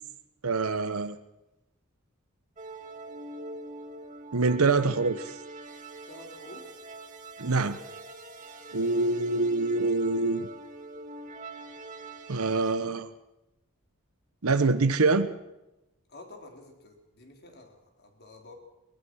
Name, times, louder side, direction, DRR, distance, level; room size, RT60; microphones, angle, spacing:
voice 1, 0.4-1.2 4.3-5.3 7.4-7.8 8.7-10.5 12.3-13.1 14.4-15.3, right 3 dB, 85° right, 10 dB, 1.0 m, -25 dB
sound 1, 2.6-12.8, right 2 dB, 35° right, 2.3 m, -44 dB
voice 2, 6.1-6.6 8.7-9.2 16.1-18.5, left 2 dB, 50° left, 3 dB, 4.0 m, -49 dB
22.0 x 20.0 x 6.3 m, 0.95 s
head